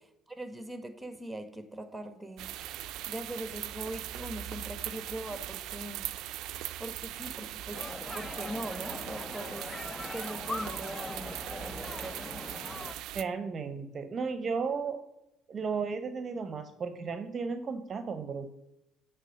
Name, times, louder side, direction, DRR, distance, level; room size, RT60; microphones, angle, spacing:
voice 1, 0.0-2.5 3.1-6.0 6.8-7.9 8.1-12.6, right 1 dB, 10° right, 9 dB, 1.2 m, -41 dB
sound 1, 2.4-13.2, right 13 dB, 70° right, 0.3 m, -40 dB
sound 2, 7.7-12.9, left 2 dB, 15° left, 0.4 m, -41 dB
voice 2, 13.1-15.0 15.5-18.5, right 5 dB, 40° right, 9 dB, 0.7 m, -34 dB
8.3 x 3.5 x 6.3 m, 0.85 s
supercardioid pair, 75°, 0 cm